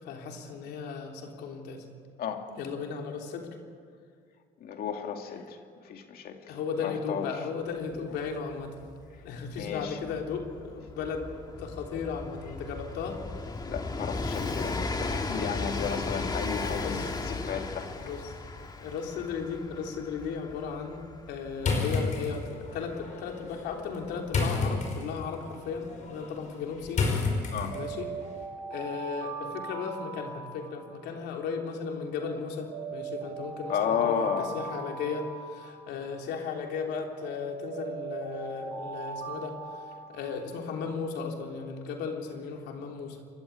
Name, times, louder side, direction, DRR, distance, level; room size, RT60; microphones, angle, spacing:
voice 1, 0.0-1.9 2.6-3.5 6.5-8.8 9.2-11.3 11.6-13.2 15.7-16.1 16.8-17.1 18.0-18.3 18.7-21.0 21.3-27.1 27.7-28.1 28.7-39.6 40.1-43.2, left 5 dB, 80° left, 2 dB, 3.5 m, -36 dB
voice 2, 4.6-5.6 5.9-7.3 9.5-10.0 13.7-18.1 27.5-27.8 33.7-34.5, left 8 dB, 65° left, 4 dB, 2.5 m, -33 dB
Train, 8.0-8.1 8.2-24.9 25.8-25.9, left 3 dB, 25° left, 1.8 m, -36 dB
sound 1, 21.6-28.1, left 3 dB, 45° left, 5.3 m, -32 dB
Alarm, 27.5-31.7 32.2-36.7 37.2-41.0, right 5 dB, 85° right, 6.0 m, -40 dB
28.0 x 12.5 x 8.7 m, 2.1 s
cardioid pair, 110°, 17 cm